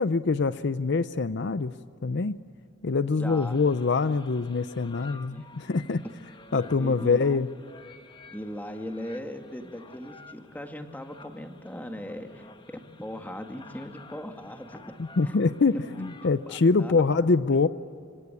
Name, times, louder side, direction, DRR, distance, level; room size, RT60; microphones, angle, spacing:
voice 1, 0.0-1.8 2.0-2.4 2.8-6.0 6.5-7.5 15.0-17.7, left 4 dB, 60° left, 14 dB, 0.6 m, -24 dB
sound 1, 3.2-16.7, left 4 dB, 25° left, 1.2 m, -52 dB
voice 2, 3.2-3.6 5.0-5.5 6.5-7.3 8.3-14.9 15.2-15.4 15.7-15.8 16.5-16.9 17.2-17.3, left 1 dB, 10° left, 5 dB, 1.9 m, -39 dB
26.5 x 26.0 x 8.5 m, 2.4 s
head